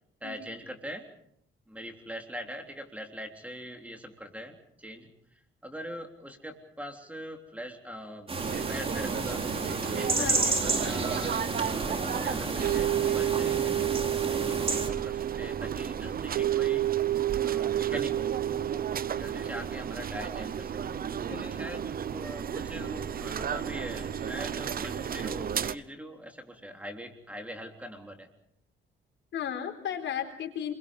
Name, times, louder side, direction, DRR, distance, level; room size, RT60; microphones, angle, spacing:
voice 1, 0.2-1.1 1.7-8.3 8.7-9.4 9.8-14.1 14.4-16.9 17.4-18.9 19.1-28.3, equal, 5° right, 4 dB, 3.6 m, -42 dB
sound 1, 8.3-14.9, right 3 dB, 30° right, 3.6 m, -31 dB
sound 2, 8.4-25.8, right 8 dB, 50° right, 0.9 m, -34 dB
voice 2, 10.2-10.5 21.3-21.5 29.3-30.7, left 9 dB, 70° left, 4 dB, 4.0 m, -35 dB
sound 3, 12.6-19.9, right 14 dB, 70° right, 1.3 m, -30 dB
29.5 x 23.0 x 5.4 m, 0.71 s
cardioid pair, 90°, 20 cm